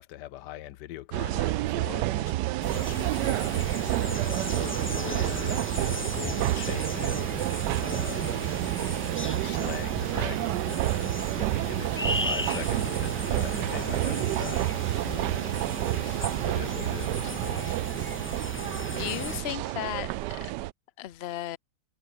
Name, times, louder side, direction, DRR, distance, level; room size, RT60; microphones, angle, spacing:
voice 1, 0.0-8.5 9.2-17.8, left 14 dB, 85° left, 1.3 m, -42 dB
sound 1, 1.1-20.7, right 17 dB, 85° right, 1.2 m, -29 dB
sound 2, 2.6-19.4, left 2 dB, 15° left, 0.4 m, -37 dB
sound 3, 13.3-19.5, right 1 dB, 25° right, 7.9 m, -49 dB
voice 2, 19.0-20.4 21.0-21.6, left 13 dB, 55° left, 0.7 m, -35 dB
omnidirectional pair, 1.8 m